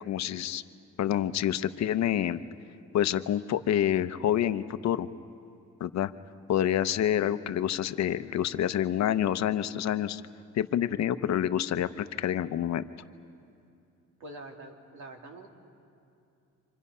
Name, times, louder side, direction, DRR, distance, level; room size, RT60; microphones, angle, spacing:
voice 1, 0.1-0.6 1.0-2.4 2.9-5.1 5.8-6.1 6.5-10.2 10.5-12.9, left 11 dB, 65° left, 12 dB, 0.7 m, -27 dB
voice 2, 14.2-15.5, right 2 dB, 75° right, 2 dB, 2.7 m, -45 dB
29.5 x 25.5 x 5.5 m, 2.6 s
cardioid pair, 100°, 30 cm